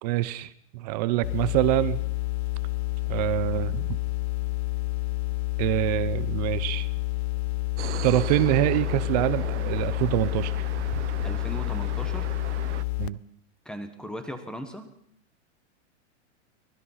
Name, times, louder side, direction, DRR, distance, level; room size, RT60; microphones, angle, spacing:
voice 1, 0.0-2.0 3.1-4.0 5.6-6.9 8.0-10.5 13.0-13.2, right 16 dB, 35° right, 15 dB, 0.8 m, -25 dB
sound 1, 1.2-13.1, left 23 dB, 60° left, 0.8 m, -29 dB
sound 2, 7.8-12.8, right 13 dB, 75° right, 0.9 m, -37 dB
voice 2, 11.2-12.3 13.6-14.9, equal, ahead, 8 dB, 1.3 m, -37 dB
24.0 x 19.5 x 5.8 m, 0.64 s
supercardioid pair, 170°, 36 cm